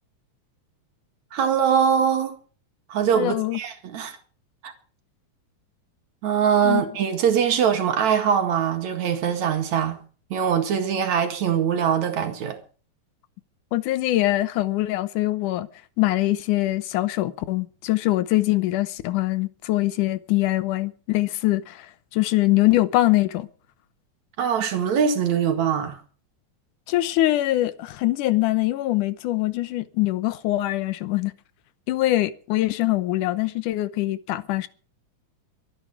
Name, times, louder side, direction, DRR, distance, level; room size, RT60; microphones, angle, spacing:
voice 1, 1.3-2.4 2.9-4.2 4.6-4.7 6.2-10.0 10.3-12.6 24.4-26.0, right 8 dB, 65° right, 3.2 m, -22 dB
voice 2, 3.1-3.6 6.6-6.8 13.7-15.7 16.0-21.9 22.1-23.5 26.9-31.3 31.9-34.7, left 16 dB, 85° left, 2.4 m, -23 dB
23.5 x 10.0 x 4.9 m
omnidirectional pair, 3.5 m